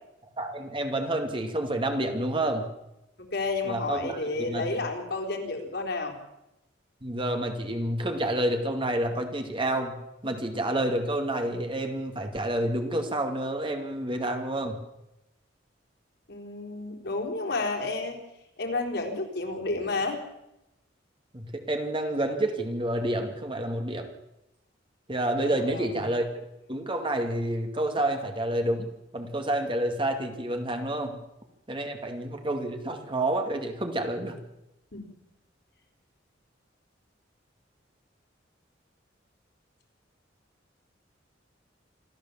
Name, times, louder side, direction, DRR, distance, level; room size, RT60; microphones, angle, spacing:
voice 1, 0.4-2.6 3.6-4.9 7.0-10.0 10.2-14.8 21.3-24.1 25.1-26.3 26.7-28.9 29.1-31.1 31.7-34.4, right 1 dB, 30° right, 5 dB, 2.2 m, -29 dB
voice 2, 3.2-6.2 16.3-18.2 18.6-20.2 25.4-26.0 34.9-35.1, left 3 dB, 60° left, 2 dB, 4.1 m, -31 dB
26.5 x 13.5 x 7.3 m, 0.89 s
head